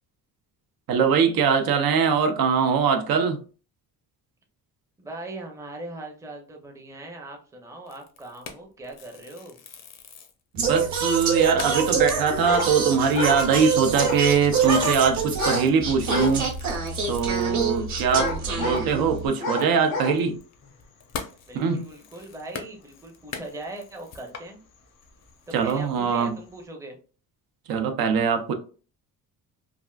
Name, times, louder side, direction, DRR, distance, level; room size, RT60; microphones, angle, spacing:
voice 1, 0.9-3.4 10.6-16.5 17.1-18.3 18.6-20.4 21.5-21.8 25.5-26.4 27.7-28.5, right 6 dB, 75° right, 5 dB, 0.6 m, -22 dB
voice 2, 5.0-9.6 18.0-19.1 21.5-24.6 25.5-27.0, right 2 dB, 10° right, 1 dB, 0.5 m, -40 dB
sound 1, 7.9-10.4 10.9-11.0 11.3-11.4 11.6-18.5 18.8-18.9 19.2-24.5 25.0-25.8, left 6 dB, 45° left, 0.5 m, -43 dB
Singing, 10.6-19.3, right 5 dB, 50° right, 0.9 m, -26 dB
sound 2, 12.4-12.7 13.0-13.4 13.8-14.2 14.6-14.9 15.3-15.7 16.0-16.4 16.9-17.0 18.1-18.9 19.4-20.2, left 2 dB, 90° left, 1.0 m, -29 dB
3.4 x 2.4 x 2.2 m, 0.37 s
cardioid pair, 150°, 36 cm